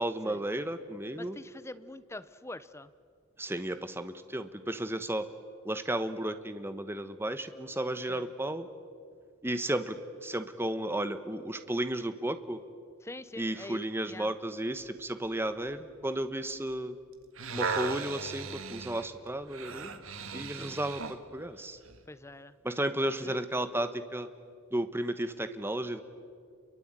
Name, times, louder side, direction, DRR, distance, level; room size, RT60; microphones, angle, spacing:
voice 1, 0.0-1.4 3.4-5.3 5.6-8.7 9.4-12.6 13.4-16.9 17.5-20.0 20.3-21.8 22.6-24.3 24.7-26.0, right 1 dB, 10° right, 10 dB, 1.1 m, -33 dB
voice 2, 1.2-2.9 8.1-8.3 13.0-14.3 20.6-20.8 22.1-22.5 23.2-23.4, left 1 dB, 10° left, 14 dB, 0.7 m, -45 dB
sound 1, 17.1-21.2 21.9-22.0, right 5 dB, 70° right, 1.7 m, -37 dB
29.0 x 23.0 x 9.0 m, 2.2 s
head